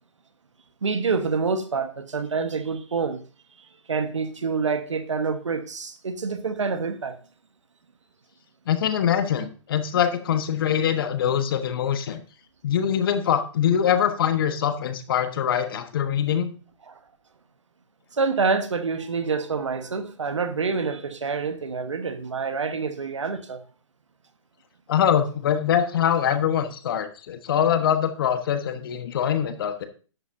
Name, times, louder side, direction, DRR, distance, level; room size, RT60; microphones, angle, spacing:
voice 1, 0.8-3.2 3.9-7.1 16.9-17.0 18.2-23.6, right 4 dB, 75° right, 1.2 m, -27 dB
voice 2, 8.7-12.2 12.6-16.5 24.9-29.9, left 9 dB, 50° left, 1.2 m, -23 dB
11.0 x 8.3 x 2.7 m
figure-of-eight pair, 135°, 16 cm